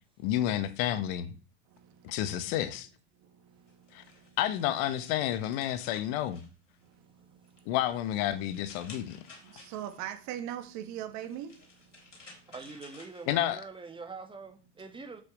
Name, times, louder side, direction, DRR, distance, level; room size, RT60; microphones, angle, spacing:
voice 1, 0.2-1.3 2.0-2.9 3.9-4.0 4.4-6.4 7.7-9.2 13.3-13.6, left 12 dB, 55° left, 1.2 m, -30 dB
voice 2, 1.7-2.4 3.2-4.4 6.8-7.7 9.3-12.5, right 11 dB, 50° right, 2.0 m, -43 dB
sound 1, 3.7-7.0 7.4-10.2 11.1-13.8, left 3 dB, 80° left, 3.9 m, -55 dB
voice 3, 12.5-15.2, right 4 dB, 15° right, 2.0 m, -44 dB
8.3 x 7.9 x 4.8 m
figure-of-eight pair, 80°, 36 cm